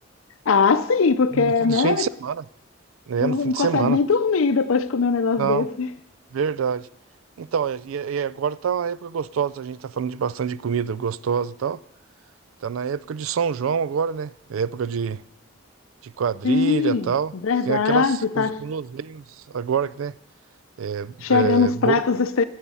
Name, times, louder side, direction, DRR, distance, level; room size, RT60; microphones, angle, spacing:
voice 1, 0.5-2.1 3.2-5.9 16.4-18.6 21.2-22.4, left 5 dB, 85° left, 0.5 m, -21 dB
voice 2, 1.3-2.4 3.1-4.0 5.4-5.7 6.3-6.9 7.4-11.8 12.6-15.2 16.0-17.3 17.7-20.1 20.8-22.0, right 7 dB, 85° right, 0.4 m, -26 dB
16.5 x 7.3 x 5.5 m
head